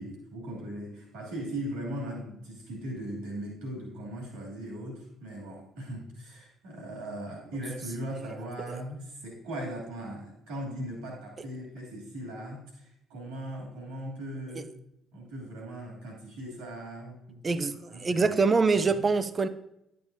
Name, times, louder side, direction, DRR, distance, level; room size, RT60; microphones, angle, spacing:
voice 1, 0.0-14.7 15.1-17.6 17.9-18.4 18.9-19.0, right 1 dB, 75° right, 2.6 m, -39 dB
voice 2, 17.4-19.5, right 4 dB, 35° right, 0.6 m, -25 dB
10.5 x 7.5 x 2.7 m
hypercardioid pair, 45°, 0 cm